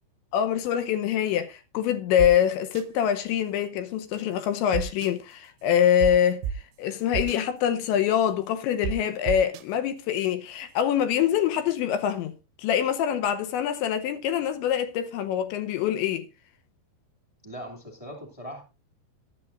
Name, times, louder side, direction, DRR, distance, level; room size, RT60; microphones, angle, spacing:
voice 1, 0.3-6.5 6.8-16.3, left 9 dB, 80° left, 3.1 m, -25 dB
sound 1, 2.2-2.3 2.8-2.9 4.7-5.1 6.0-6.1 6.4-6.5 7.1-7.4 8.8-8.9 9.3-9.6, right 9 dB, 85° right, 3.3 m, -29 dB
voice 2, 17.4-18.6, equal, 20° right, 0.9 m, -40 dB
16.0 x 11.5 x 2.5 m
omnidirectional pair, 5.4 m